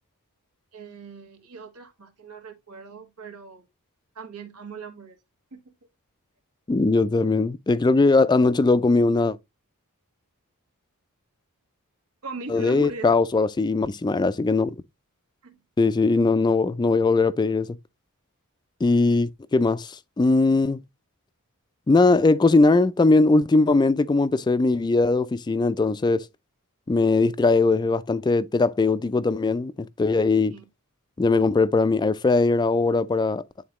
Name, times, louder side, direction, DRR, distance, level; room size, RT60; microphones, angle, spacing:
voice 1, 0.7-3.6 4.1-5.1 5.5-5.7 12.2-13.1 15.4-15.6 30.5-30.7, right 3 dB, 85° right, 1.5 m, -39 dB
voice 2, 6.7-9.4 12.5-14.7 15.8-17.7 18.8-20.8 21.9-26.3 26.9-30.5 31.2-33.4, left 3 dB, 20° left, 0.3 m, -20 dB
9.4 x 3.9 x 2.9 m
head